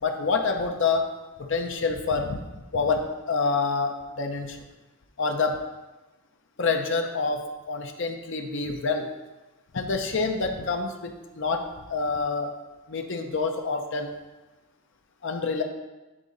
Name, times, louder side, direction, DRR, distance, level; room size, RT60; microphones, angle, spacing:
voice 1, 0.0-1.0 1.4-2.4 2.7-4.6 5.2-5.6 6.6-7.4 7.7-9.0 9.7-11.6 11.9-12.5 12.9-14.1 15.2-15.6, left 4 dB, 60° left, 4 dB, 0.7 m, -27 dB
8.8 x 3.7 x 4.0 m, 1.1 s
head